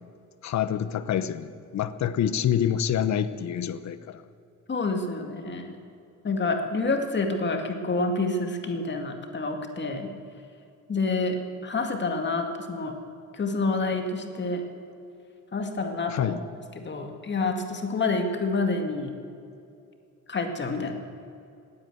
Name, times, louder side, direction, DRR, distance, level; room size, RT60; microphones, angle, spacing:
voice 1, 0.4-4.2 16.1-16.4, left 9 dB, 65° left, 13 dB, 0.9 m, -27 dB
voice 2, 4.7-5.8 6.2-10.1 10.9-11.4 11.6-13.0 13.3-14.6 15.5-16.4 16.8-19.1 20.3-20.9, left 3 dB, 35° left, 4 dB, 2.2 m, -28 dB
18.0 x 9.6 x 8.0 m, 2.6 s
cardioid pair, 90°, 30 cm